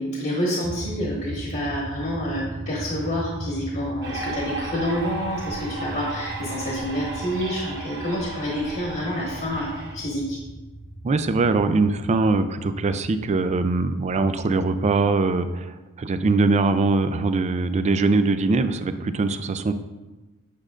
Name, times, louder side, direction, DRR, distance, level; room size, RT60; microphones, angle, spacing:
voice 1, 0.0-10.4, equal, 45° left, -3 dB, 1.3 m, -28 dB
sound 1, 0.6-15.1, right 1 dB, 70° left, 1.9 m, -39 dB
sound 2, 4.0-10.0, right 3 dB, 55° right, 1.2 m, -35 dB
voice 2, 11.0-19.7, right 3 dB, 30° right, 10 dB, 0.4 m, -22 dB
8.4 x 6.3 x 2.5 m, 1.1 s
head